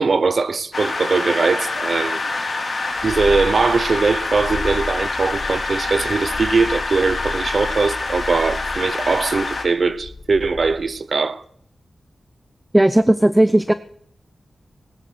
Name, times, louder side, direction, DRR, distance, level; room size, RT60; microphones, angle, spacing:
voice 1, 0.0-2.4 3.0-11.4, right 4 dB, 60° right, 0.9 m, -21 dB
sound 1, 0.7-9.6, left 3 dB, 55° left, 4.3 m, -26 dB
Purr, 2.9-11.0, left 3 dB, 70° left, 2.0 m, -34 dB
voice 2, 12.7-13.7, right 1 dB, 15° right, 0.7 m, -15 dB
18.5 x 9.8 x 6.3 m
wide cardioid pair, 80°, 0 cm